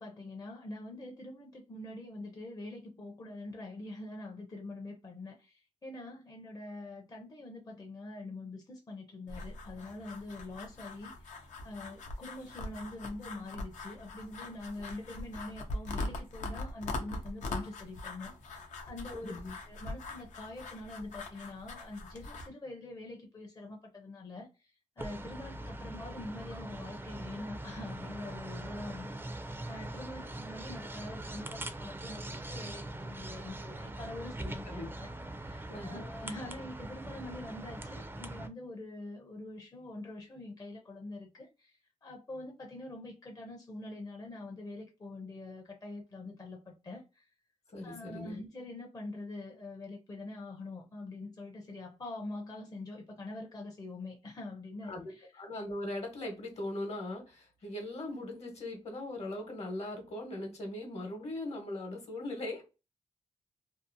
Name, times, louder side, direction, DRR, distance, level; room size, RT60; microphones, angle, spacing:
voice 1, 0.0-19.3 19.6-47.3 47.8-55.3, left 2 dB, 30° left, 0.5 m, -45 dB
sound 1, 9.3-22.5, left 2 dB, 80° left, 0.6 m, -42 dB
voice 2, 19.1-19.5 34.7-34.9 35.7-36.1 47.7-48.5 54.9-55.0 55.4-62.6, left 1 dB, 60° left, 1.0 m, -39 dB
sound 2, 25.0-38.5, right 1 dB, 20° right, 0.4 m, -42 dB
2.7 x 2.0 x 2.6 m
cardioid pair, 80°, 12 cm